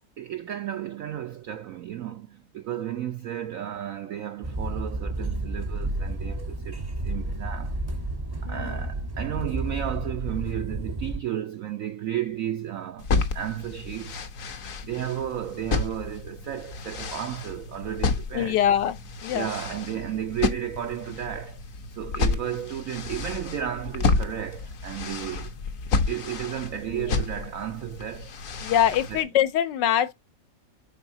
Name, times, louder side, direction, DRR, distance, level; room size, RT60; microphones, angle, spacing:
voice 1, 0.2-7.8 8.4-14.2 14.8-18.6 19.3-21.6 21.9-25.5 26.1-28.3 29.1-29.2, right 11 dB, 75° right, 0.7 m, -33 dB
sound 1, 4.4-11.2, right 2 dB, 25° right, 0.5 m, -31 dB
voice 2, 8.4-8.8 18.3-19.5 26.9-27.1 28.6-30.1, left 10 dB, 75° left, 1.3 m, -24 dB
sound 2, 13.0-29.2, left 4 dB, 55° left, 1.2 m, -31 dB
11.0 x 4.0 x 2.6 m
omnidirectional pair, 2.0 m